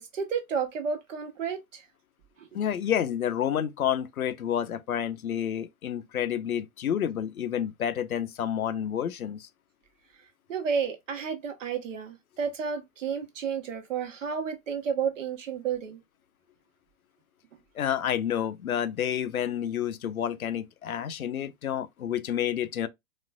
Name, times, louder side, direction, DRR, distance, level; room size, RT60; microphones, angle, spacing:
voice 1, 0.0-1.8 2.4-2.5 10.5-16.0, right 6 dB, 60° right, 1.1 m, -31 dB
voice 2, 2.5-9.5 17.8-22.9, left 9 dB, 75° left, 0.6 m, -29 dB
4.1 x 2.3 x 2.3 m
figure-of-eight pair, 105°, 43 cm